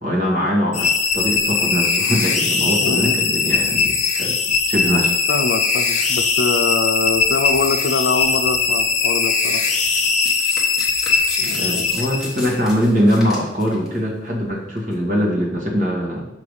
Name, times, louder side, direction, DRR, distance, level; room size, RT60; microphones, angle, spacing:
voice 1, 0.0-4.3 4.7-5.1 11.4-16.3, equal, 45° right, -4 dB, 1.9 m, -22 dB
sound 1, 0.7-12.6, left 5 dB, 40° left, 0.8 m, -20 dB
voice 2, 2.8-3.2 5.3-9.6 11.4-11.9, left 4 dB, 75° left, 9 dB, 0.5 m, -23 dB
Domestic sounds home sounds, 9.9-13.9 14.8-14.9, left 1 dB, 5° right, 1.3 m, -34 dB
6.5 x 3.3 x 5.4 m, 0.85 s
head